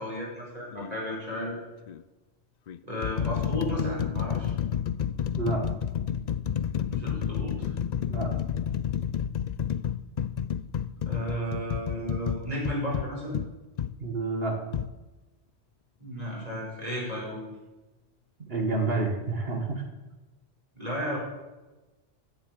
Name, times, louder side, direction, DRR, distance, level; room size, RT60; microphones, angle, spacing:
voice 1, 0.0-1.5 2.8-4.5 6.9-7.7 11.1-13.4 16.0-17.4 20.7-21.2, equal, 35° right, -4 dB, 5.2 m, -33 dB
sound 1, 0.7-1.0 1.9-2.0 2.7-14.0 14.7-14.9, left 8 dB, 60° left, 0.4 m, -30 dB
voice 2, 5.3-5.6 8.1-8.3 14.0-14.6 18.5-19.8, right 3 dB, 55° right, 3 dB, 2.1 m, -28 dB
15.5 x 7.8 x 6.7 m, 1.1 s
omnidirectional pair, 1.2 m